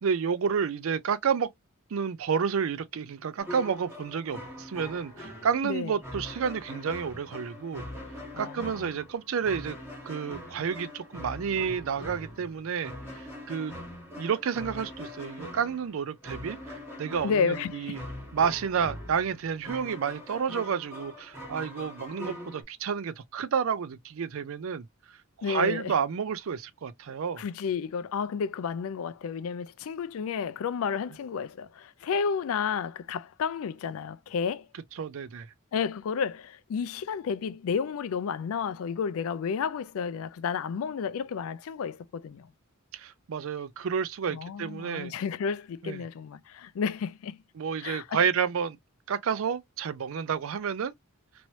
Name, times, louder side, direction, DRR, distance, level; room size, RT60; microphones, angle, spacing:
voice 1, 0.0-1.5 1.9-7.8 8.4-9.8 10.1-13.8 14.2-18.0 18.3-24.8 25.4-27.4 35.0-35.5 42.9-45.1 45.8-46.0 47.6-48.8 49.1-50.9, right 6 dB, 65° right, 0.4 m, -30 dB
sound 1, 3.4-22.6, left 1 dB, 10° right, 1.4 m, -42 dB
voice 2, 5.6-6.0 8.3-8.9 17.2-18.0 25.4-25.9 27.4-34.7 35.7-42.5 44.3-47.4 47.8-48.2, left 6 dB, 65° left, 0.3 m, -31 dB
3.0 x 3.0 x 2.7 m
head